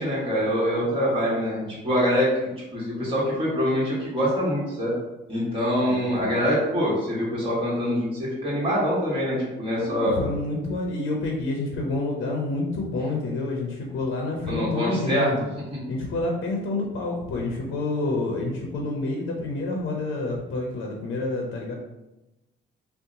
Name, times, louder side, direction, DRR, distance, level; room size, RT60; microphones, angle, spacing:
voice 1, 0.0-4.9 5.3-10.2 14.5-15.3, equal, 25° right, -7 dB, 1.2 m, -24 dB
voice 2, 5.8-6.4 9.8-15.5 15.9-21.7, left 2 dB, 75° left, -1 dB, 0.6 m, -28 dB
2.7 x 2.1 x 3.7 m, 0.98 s
cardioid pair, 90°, 20 cm